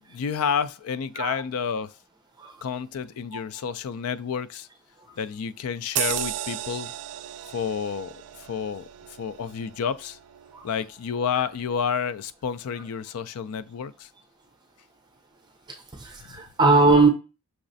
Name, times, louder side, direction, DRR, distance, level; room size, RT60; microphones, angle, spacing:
voice 1, 0.1-1.9 2.6-4.7 5.2-6.9 7.5-8.9 9.2-10.2 10.6-14.1 16.3-16.4, left 6 dB, 80° left, 0.4 m, -30 dB
sound 1, 6.0-10.9 11.3-11.5, right 13 dB, 90° right, 0.3 m, -34 dB
voice 2, 15.7-17.1, right 3 dB, 20° right, 0.7 m, -21 dB
5.9 x 3.1 x 2.6 m
head